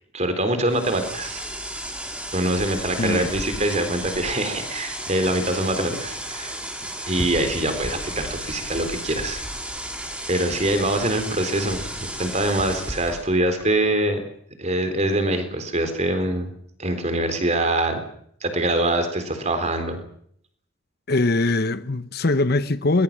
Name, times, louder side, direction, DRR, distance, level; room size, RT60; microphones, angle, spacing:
voice 1, 0.1-1.4 2.3-6.5 7.1-9.4 10.3-14.2 14.6-16.5 16.8-18.0 18.4-20.0, right 1 dB, 35° right, 3.8 m, -24 dB
sound 1, 0.7-13.2, right 1 dB, 5° right, 3.8 m, -33 dB
voice 2, 3.0-3.3 21.1-23.0, left 2 dB, 50° left, 1.0 m, -22 dB
sound 2, 7.2-8.2 10.5-11.1 12.6-13.9, equal, 15° left, 4.5 m, -38 dB
21.5 x 21.5 x 7.4 m
head